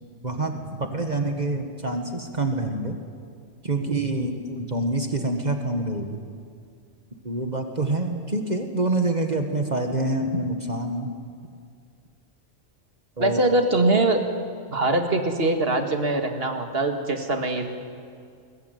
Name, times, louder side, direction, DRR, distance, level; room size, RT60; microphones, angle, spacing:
voice 1, 0.2-3.0 3.6-6.2 7.2-11.1 13.2-13.4, right 2 dB, 35° right, 5 dB, 1.7 m, -26 dB
voice 2, 13.2-14.2 14.7-17.6, right 2 dB, 50° right, 5 dB, 2.2 m, -22 dB
21.0 x 20.5 x 9.3 m, 2.2 s
omnidirectional pair, 1.3 m